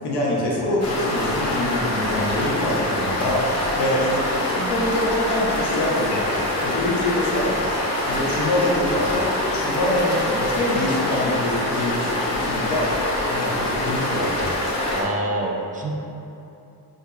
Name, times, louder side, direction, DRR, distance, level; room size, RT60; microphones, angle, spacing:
voice 1, 0.0-6.3 6.6-7.6 8.0-12.9 13.3-14.5, left 1 dB, 90° left, -5 dB, 1.1 m, -25 dB
sound 1, 0.8-15.0, left 1 dB, 40° left, 0.9 m, -25 dB
voice 2, 14.9-16.0, right 1 dB, 20° right, -1 dB, 0.3 m, -26 dB
6.5 x 2.7 x 2.3 m, 2.8 s
wide cardioid pair, 145°, 39 cm